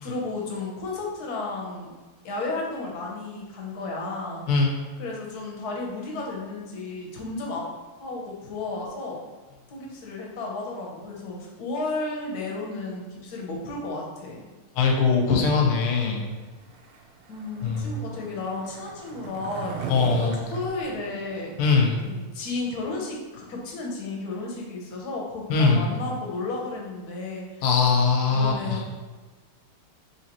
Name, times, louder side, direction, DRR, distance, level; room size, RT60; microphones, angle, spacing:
voice 1, 0.0-1.9 2.2-4.4 5.0-7.7 8.0-9.2 9.7-14.4 17.3-21.5 22.0-27.6 28.3-28.9, left 3 dB, 65° left, -2 dB, 0.9 m, -33 dB
voice 2, 14.7-16.3 17.6-17.9 19.9-20.4 21.6-22.0 25.5-25.9 27.6-28.8, left 4 dB, 85° left, 1 dB, 1.6 m, -21 dB
Skateboard, 16.6-22.0, right 6 dB, 80° right, 1.5 m, -38 dB
4.0 x 2.8 x 2.9 m, 1.3 s
omnidirectional pair, 2.4 m